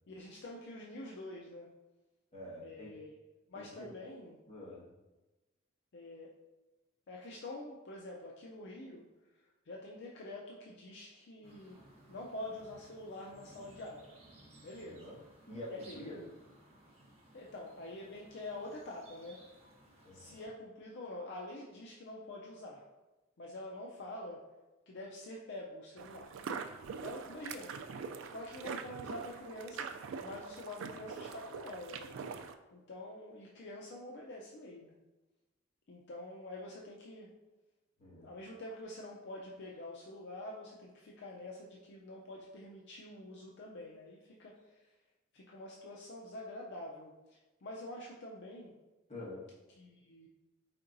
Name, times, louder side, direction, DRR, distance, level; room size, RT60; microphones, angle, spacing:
voice 1, 0.1-1.7 2.6-3.2 3.5-4.4 5.9-6.3 7.1-9.0 9.3-11.8 12.1-14.2 14.5-15.2 15.7-16.1 17.3-19.4 20.1-22.9 23.4-24.5 24.9-26.4 27.0-27.8 28.3-32.1 32.7-34.9 35.9-37.3 38.2-44.9 45.3-48.7 49.8-50.3, left 1 dB, 60° left, -2 dB, 0.5 m, -46 dB
voice 2, 2.3-2.9 3.5-3.9 4.5-4.8 14.8-15.2 15.5-16.2 20.0-20.4 38.0-38.3 49.1-49.4, left 1 dB, 35° left, -7 dB, 1.4 m, -47 dB
sound 1, 11.4-20.4, right 1 dB, 35° right, 0.9 m, -60 dB
sound 2, 26.0-32.5, right 6 dB, 70° right, 0.3 m, -43 dB
4.5 x 4.3 x 2.6 m, 1.1 s
head